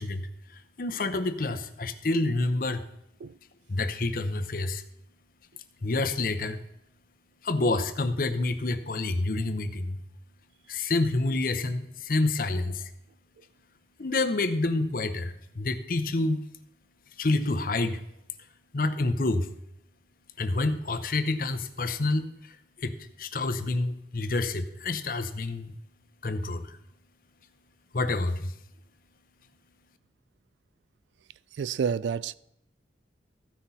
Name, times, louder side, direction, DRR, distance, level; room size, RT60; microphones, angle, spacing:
voice 1, 0.0-2.9 3.7-4.8 5.8-6.6 7.4-10.0 10.7-12.9 14.0-16.5 17.2-18.0 18.7-19.5 20.4-25.7 26.2-26.8 27.9-28.5, left 2 dB, 50° left, 0.7 m, -28 dB
voice 2, 31.5-32.3, right 6 dB, 85° right, 0.3 m, -29 dB
14.5 x 5.9 x 4.1 m
head